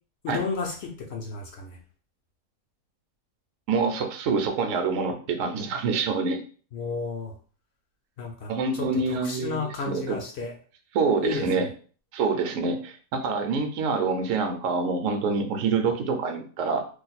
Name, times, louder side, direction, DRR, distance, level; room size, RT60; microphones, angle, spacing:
voice 1, 0.2-1.8 6.7-7.3 8.2-10.5 11.2-11.5, left 4 dB, 65° left, 2 dB, 0.7 m, -32 dB
voice 2, 3.7-6.4 8.5-10.2 10.9-11.7 12.1-16.9, right 4 dB, 70° right, 5 dB, 0.9 m, -26 dB
2.6 x 2.2 x 4.1 m, 0.41 s
omnidirectional pair, 1.5 m